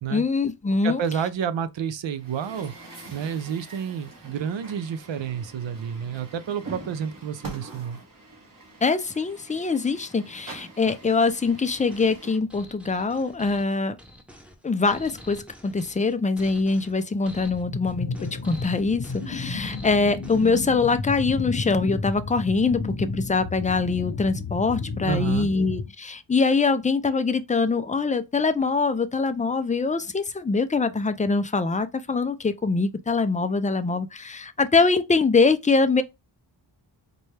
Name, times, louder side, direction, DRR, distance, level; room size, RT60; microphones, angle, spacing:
voice 1, 0.1-1.0 8.8-14.0 14.6-18.1 18.4-36.0, left 4 dB, 20° left, 0.4 m, -23 dB
voice 2, 0.8-2.7 3.1-8.0 25.0-25.5, right 8 dB, 75° right, 0.6 m, -30 dB
Truck, 2.2-12.4, right 2 dB, 45° right, 1.4 m, -44 dB
sound 1, 11.7-20.6, equal, 5° right, 0.8 m, -47 dB
sound 2, 17.4-25.9, left 4 dB, 55° left, 0.8 m, -32 dB
4.0 x 2.3 x 3.2 m
wide cardioid pair, 70°, 45 cm